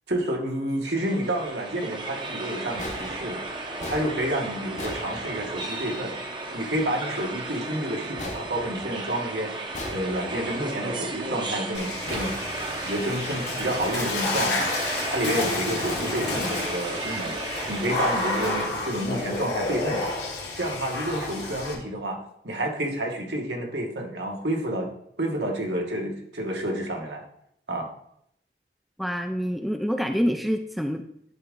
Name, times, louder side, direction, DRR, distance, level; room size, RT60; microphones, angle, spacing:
voice 1, 0.1-3.4 3.9-6.1 6.5-12.4 12.8-14.7 15.1-17.3 17.7-20.1 20.5-24.9 25.2-27.2 27.7-27.9, right 1 dB, 75° right, 1 dB, 1.4 m, -29 dB
sound 1, 1.0-18.7, right 2 dB, 25° right, 0.7 m, -34 dB
sound 2, 2.8-5.8 8.2-9.3 9.7-10.6 12.1-13.2, left 1 dB, 40° left, 1.0 m, -39 dB
Water / Splash splatter, 11.7-21.7, left 2 dB, 70° left, 1.6 m, -30 dB
voice 2, 29.0-31.0, equal, ahead, 5 dB, 0.3 m, -26 dB
11.0 x 3.6 x 3.7 m, 0.72 s
head